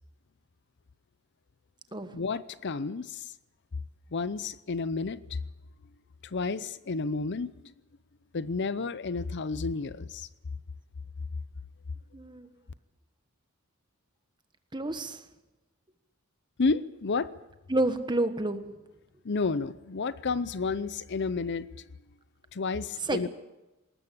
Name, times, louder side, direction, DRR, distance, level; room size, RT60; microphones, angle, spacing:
voice 1, 2.1-3.3 4.1-5.4 6.2-7.5 8.3-10.3 16.6-17.3 19.2-21.7 22.5-23.3, left 4 dB, 55° left, 16 dB, 0.7 m, -31 dB
voice 2, 12.1-12.5 14.7-15.2 17.7-18.6 23.1-23.3, right 2 dB, 20° right, 9 dB, 1.5 m, -29 dB
20.5 x 19.5 x 8.6 m, 1.0 s
head